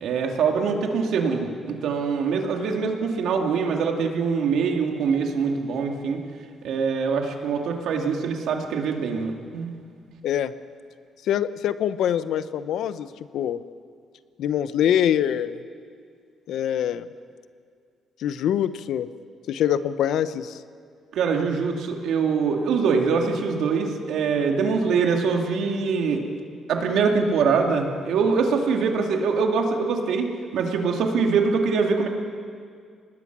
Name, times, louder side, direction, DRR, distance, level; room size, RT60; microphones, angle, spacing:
voice 1, 0.0-6.2 6.6-9.7 21.1-26.2 26.7-32.1, right 5 dB, 75° right, 2 dB, 2.5 m, -23 dB
voice 2, 11.3-13.6 14.4-15.6 16.5-17.1 18.2-19.1 19.5-20.6, left 10 dB, 75° left, 13 dB, 0.8 m, -24 dB
25.0 x 19.5 x 6.1 m, 2.2 s
cardioid pair, 90°, 0 cm